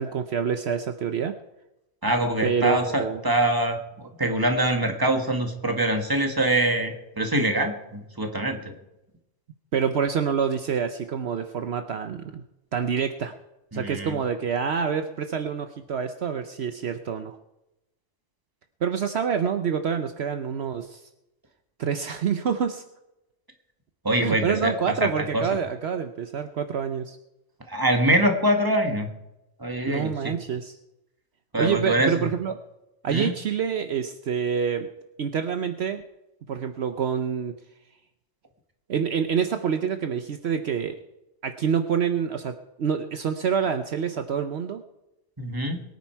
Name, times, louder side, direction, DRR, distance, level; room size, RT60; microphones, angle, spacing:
voice 1, 0.0-1.3 2.4-3.2 9.7-12.4 12.7-13.3 13.7-17.4 18.8-21.1 21.8-22.8 24.2-27.2 29.9-30.8 31.6-32.5 33.0-34.9 35.2-36.0 36.5-37.5 38.9-41.0 41.4-44.8, right 7 dB, 65° right, 8 dB, 1.0 m, -27 dB
voice 2, 2.0-8.7 13.7-14.1 24.0-24.7 25.0-25.1 25.3-25.5 27.7-29.1 29.6-30.3 31.5-32.3 33.1-33.4 45.4-45.8, right 1 dB, 20° right, 4 dB, 1.8 m, -24 dB
22.5 x 9.5 x 4.6 m, 0.91 s
omnidirectional pair, 1.2 m